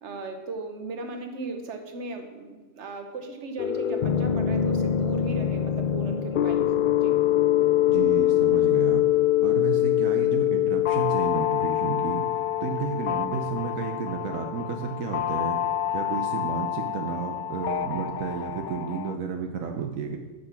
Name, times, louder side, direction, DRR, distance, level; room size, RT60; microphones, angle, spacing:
voice 1, 0.0-6.7 7.0-7.2, right 3 dB, 60° right, 5 dB, 1.4 m, -37 dB
sound 1, 3.6-19.1, left 12 dB, 70° left, 0.5 m, -25 dB
voice 2, 7.9-9.0 9.4-12.3 12.6-15.6 15.9-20.2, right 6 dB, 80° right, 4 dB, 1.2 m, -31 dB
9.2 x 6.3 x 5.9 m, 1.3 s
omnidirectional pair, 1.4 m